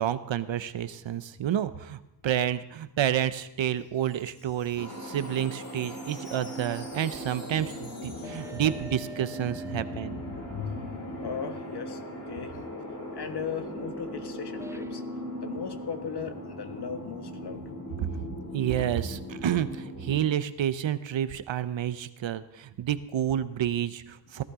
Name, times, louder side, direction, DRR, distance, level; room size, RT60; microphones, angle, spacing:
voice 1, 0.0-10.2 18.0-18.1 18.5-24.4, right 10 dB, 80° right, 13 dB, 0.7 m, -29 dB
Wind chime, 3.6-9.5, left 1 dB, 80° left, 3.0 m, -52 dB
sound 1, 4.8-20.2, equal, 40° left, 2.7 m, -39 dB
voice 2, 8.1-8.7 9.4-12.7 13.1-15.0 15.4-17.6, left 6 dB, 60° left, 8 dB, 1.3 m, -38 dB
sound 2, 8.2-10.8 12.4-12.7 14.6-15.2, right 2 dB, 5° right, 0.5 m, -46 dB
17.5 x 12.0 x 3.7 m, 0.92 s
cardioid pair, 65°, 45 cm